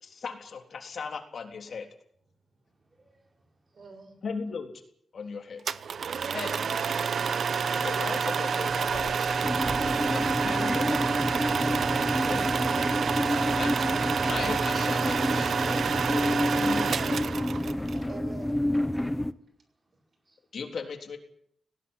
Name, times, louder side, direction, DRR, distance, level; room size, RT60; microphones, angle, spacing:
voice 1, 0.0-1.9 4.2-4.7 5.1-5.6 6.3-6.8 7.7-9.6 10.0-11.3 12.3-12.5 13.6-17.3 20.5-21.2, left 5 dB, 60° left, 3.6 m, -38 dB
voice 2, 2.7-3.5 19.4-19.5 19.8-20.4, right 2 dB, 20° right, 4.0 m, -70 dB
voice 3, 3.7-4.1 8.0-8.2 10.4-10.9 13.2-13.7 18.0-18.6, right 3 dB, 45° right, 6.5 m, -46 dB
sound 1, 5.7-18.0, right 6 dB, 65° right, 0.9 m, -28 dB
sound 2, 6.2-12.7, right 4 dB, 80° right, 2.9 m, -47 dB
sound 3, 9.4-19.3, left 1 dB, 10° left, 1.0 m, -29 dB
18.5 x 18.0 x 9.9 m
wide cardioid pair, 135°, 0 cm